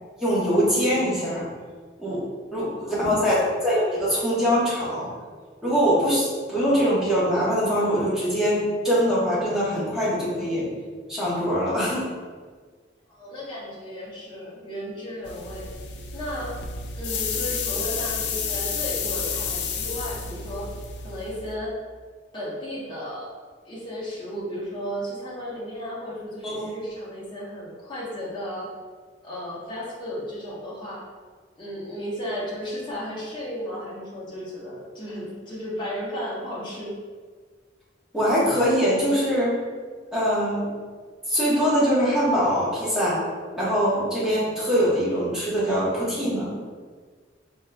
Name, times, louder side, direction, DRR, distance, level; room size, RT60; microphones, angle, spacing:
voice 1, 0.2-1.4 2.0-5.1 5.6-10.7 11.1-12.1 26.4-26.7 38.1-39.6 40.1-40.7 41.3-43.3 43.6-46.6, equal, 5° right, -10 dB, 1.3 m, -23 dB
voice 2, 2.7-3.5 13.1-15.7 16.1-16.6 16.9-20.7 21.0-21.7 22.3-23.3 23.6-28.7 29.2-31.0 31.6-36.9, equal, 25° left, -7 dB, 1.0 m, -34 dB
sound 1, 15.2-21.5, left 5 dB, 70° left, 0.4 m, -31 dB
4.1 x 3.7 x 2.3 m, 1.5 s
head